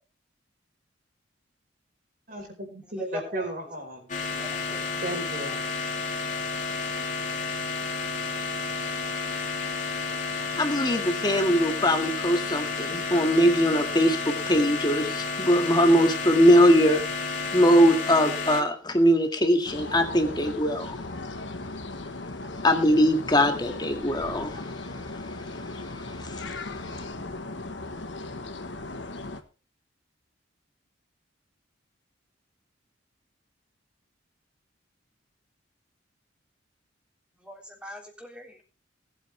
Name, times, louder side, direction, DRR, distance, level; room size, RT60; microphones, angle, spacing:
voice 1, 2.3-4.1 5.0-5.6, right 1 dB, 50° right, 2 dB, 5.0 m, -34 dB
voice 2, 2.9-3.5 4.3-5.0 5.5-5.6 37.4-38.6, left 1 dB, 5° right, 1 dB, 3.4 m, -41 dB
sound 1, 4.1-18.6, left 4 dB, 40° left, 2.9 m, -31 dB
voice 3, 10.6-17.0 17.5-21.0 22.6-24.6, equal, 20° left, 5 dB, 2.0 m, -21 dB
sound 2, 19.6-29.4, left 2 dB, 70° left, 1.4 m, -37 dB
19.0 x 8.8 x 3.5 m, 0.35 s
head